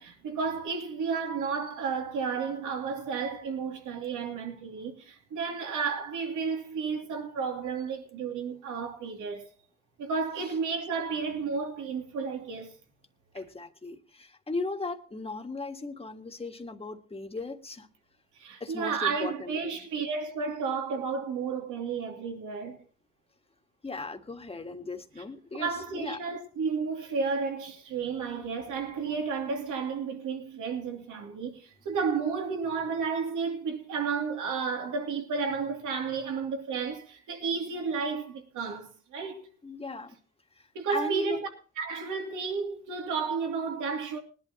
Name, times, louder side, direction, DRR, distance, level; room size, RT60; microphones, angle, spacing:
voice 1, 0.0-9.5 10.0-12.8 18.4-22.8 25.5-39.5 40.7-41.4 41.8-44.2, right 5 dB, 80° right, 3.0 m, -32 dB
voice 2, 13.3-17.9 18.6-19.7 23.8-26.2 28.2-28.3 39.6-40.2 40.6-41.4, left 3 dB, 20° left, 1.6 m, -37 dB
20.0 x 11.5 x 3.0 m
cardioid pair, 90°, 30 cm